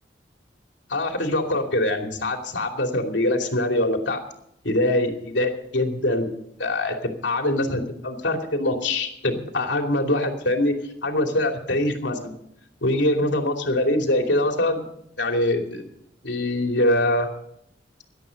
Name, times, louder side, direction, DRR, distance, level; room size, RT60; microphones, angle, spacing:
voice 1, 0.9-4.2 4.6-6.3 6.6-10.7 11.0-12.3 12.8-14.8 15.2-15.8 16.2-17.3, left 1 dB, 80° left, 3 dB, 2.8 m, -23 dB
18.0 x 12.0 x 5.3 m, 0.73 s
head